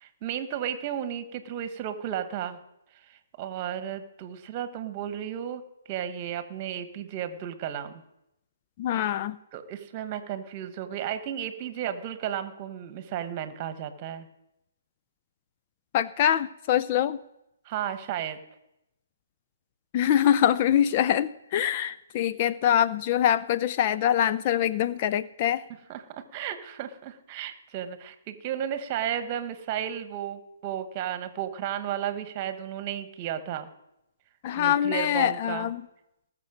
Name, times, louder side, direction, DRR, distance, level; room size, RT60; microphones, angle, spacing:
voice 1, 0.0-2.6 3.1-5.6 5.9-8.0 9.5-14.3 17.6-18.4 25.9-33.7 34.5-35.7, right 10 dB, 35° right, 10 dB, 1.4 m, -33 dB
voice 2, 8.8-9.4 15.9-17.2 19.9-25.6 34.4-35.8, left 10 dB, 35° left, 12 dB, 0.4 m, -24 dB
19.5 x 6.7 x 5.2 m, 0.86 s
figure-of-eight pair, 135°, 0 cm